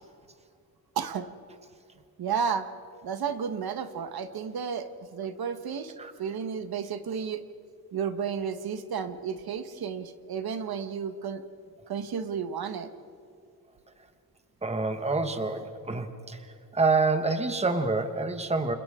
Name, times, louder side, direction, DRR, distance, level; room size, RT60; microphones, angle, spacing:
voice 1, 1.0-1.3 2.2-2.7 3.0-7.4 7.9-11.4 11.9-12.9, right 7 dB, 75° right, 9 dB, 1.3 m, -32 dB
voice 2, 14.6-16.4 16.7-18.7, right 3 dB, 15° right, 8 dB, 1.2 m, -27 dB
30.0 x 28.0 x 3.7 m, 2.4 s
wide cardioid pair, 160°, 37 cm